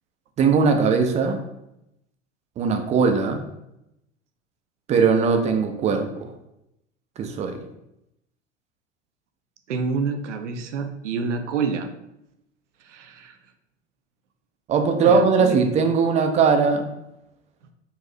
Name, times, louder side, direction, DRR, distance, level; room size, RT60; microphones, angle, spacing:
voice 1, 0.4-1.4 2.6-3.5 4.9-6.3 7.2-7.6 14.7-16.9, right 5 dB, 20° right, 5 dB, 0.4 m, -20 dB
voice 2, 9.7-11.9 12.9-13.4 15.0-15.6, right 5 dB, 75° right, 7 dB, 0.5 m, -28 dB
4.0 x 2.5 x 2.7 m, 0.85 s
figure-of-eight pair, 75°, 36 cm